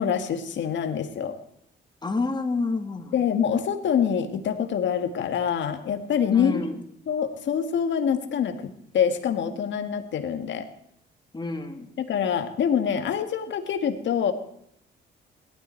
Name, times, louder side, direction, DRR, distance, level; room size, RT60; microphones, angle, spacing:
voice 1, 0.0-1.4 3.1-6.7 7.1-10.7 12.0-14.3, left 7 dB, 70° left, 7 dB, 1.8 m, -25 dB
voice 2, 2.0-3.2 6.3-6.8 11.3-11.9, left 3 dB, 20° left, 5 dB, 2.3 m, -28 dB
17.5 x 12.5 x 4.5 m, 0.72 s
cardioid pair, 90°, 20 cm